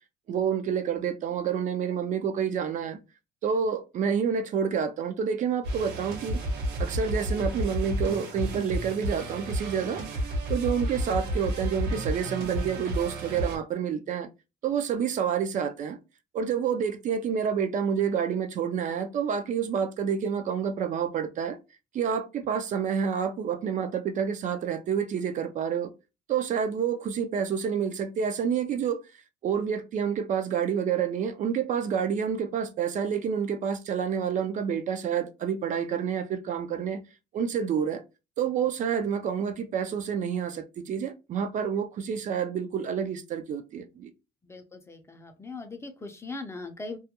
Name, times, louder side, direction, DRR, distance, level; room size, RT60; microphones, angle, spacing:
voice 1, 0.3-3.0 3.4-6.4 6.8-14.3 14.6-16.0 16.3-21.6 21.9-25.9 26.3-29.0 29.4-37.0 37.3-38.0 38.4-44.1, right 7 dB, 50° right, 0.4 m, -28 dB
sound 1, 5.6-13.6, right 1 dB, 80° right, 0.8 m, -31 dB
voice 2, 44.4-47.0, left 3 dB, 15° left, 0.4 m, -40 dB
2.3 x 2.1 x 2.8 m
cardioid pair, 110°, 17 cm